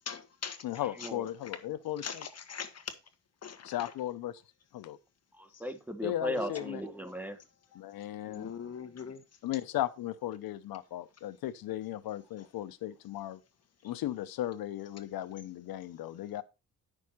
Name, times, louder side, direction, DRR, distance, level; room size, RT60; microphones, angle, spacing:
voice 1, 0.0-0.6 1.0-1.1 2.0-2.9 3.4-3.9 6.5-6.6 8.3-9.2, left 6 dB, 45° left, 1.5 m, -41 dB
voice 2, 0.6-2.0 3.6-4.4 4.7-5.0 6.0-6.8 7.7-8.5 9.4-13.4 13.8-16.4, left 13 dB, 90° left, 0.7 m, -36 dB
voice 3, 5.3-7.4, left 1 dB, 5° right, 1.3 m, -37 dB
9.4 x 6.4 x 4.4 m
cardioid pair, 115°, 35 cm